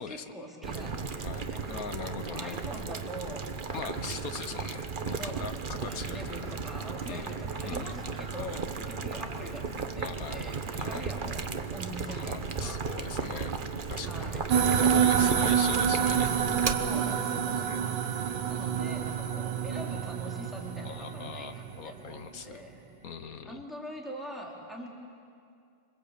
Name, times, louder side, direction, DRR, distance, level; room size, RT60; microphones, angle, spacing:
voice 1, 0.0-1.7 2.2-3.9 5.1-11.4 11.7-12.8 14.0-14.4 15.0-16.0 16.7-22.8 23.4-24.9, equal, ahead, -3 dB, 4.2 m, -43 dB
Boiling, 0.6-16.7, right 5 dB, 35° right, 1.0 m, -35 dB
voice 2, 1.2-2.6 3.7-6.5 7.1-7.3 7.7-8.0 8.4-8.6 10.0-10.5 10.8-11.1 12.1-13.6 13.9-14.1 14.8-16.3 17.7-17.8 20.8-22.6 23.0-23.6, left 6 dB, 55° left, 10 dB, 1.4 m, -41 dB
sound 1, 14.5-22.1, right 8 dB, 75° right, 1.7 m, -28 dB
26.5 x 25.5 x 8.5 m, 2.3 s
omnidirectional pair, 1.9 m